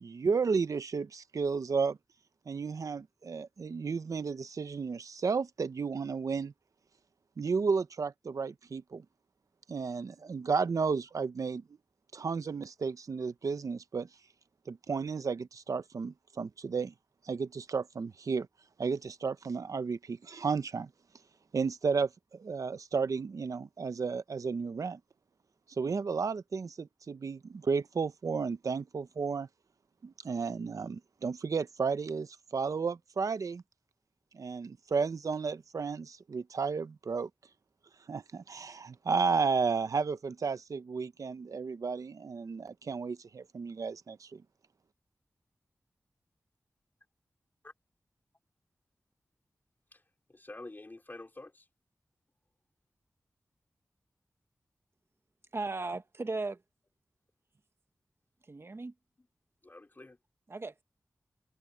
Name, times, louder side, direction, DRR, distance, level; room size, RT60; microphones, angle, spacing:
voice 1, 0.0-2.0 2.5-6.5 7.4-9.0 9.7-11.6 12.1-14.1 14.7-16.9 17.2-18.5 18.8-20.9 21.5-25.0 25.8-29.5 30.0-33.6 34.3-37.3 38.1-44.4, right 5 dB, 75° right, 0.9 m, -33 dB
voice 2, 50.3-51.7 59.6-60.2, left 2 dB, 35° left, 2.8 m, -48 dB
voice 3, 55.5-56.6 58.4-58.9 60.5-60.8, right 3 dB, 45° right, 1.4 m, -36 dB
cardioid pair, 50°, 6 cm